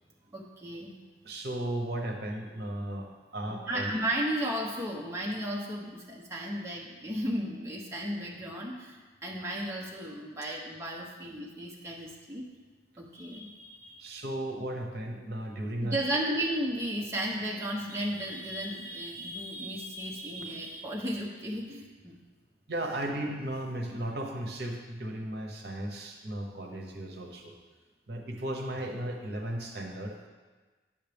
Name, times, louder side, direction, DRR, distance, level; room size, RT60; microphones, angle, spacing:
voice 1, 0.3-1.0 3.7-12.4 13.0-14.0 15.8-22.2, right 1 dB, 15° right, -3 dB, 0.8 m, -34 dB
voice 2, 1.2-3.9 14.0-16.0 22.7-27.6 28.1-30.3, right 1 dB, 60° right, 1 dB, 1.0 m, -35 dB
8.9 x 7.2 x 3.5 m, 1.3 s
head